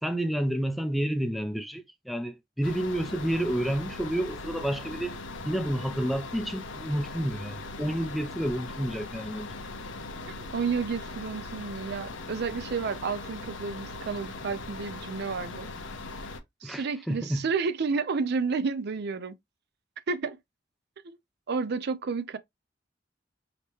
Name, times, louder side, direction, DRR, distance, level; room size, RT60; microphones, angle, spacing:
voice 1, 0.0-5.2 5.4-9.5 16.6-17.5, right 1 dB, ahead, 0.5 m, -30 dB
sound 1, 2.6-16.4, left 2 dB, 80° left, 0.8 m, -40 dB
voice 2, 10.5-15.7 16.6-19.4 20.1-20.4 21.0-21.2 21.5-22.4, right 5 dB, 60° right, 0.5 m, -31 dB
5.0 x 2.8 x 3.0 m
head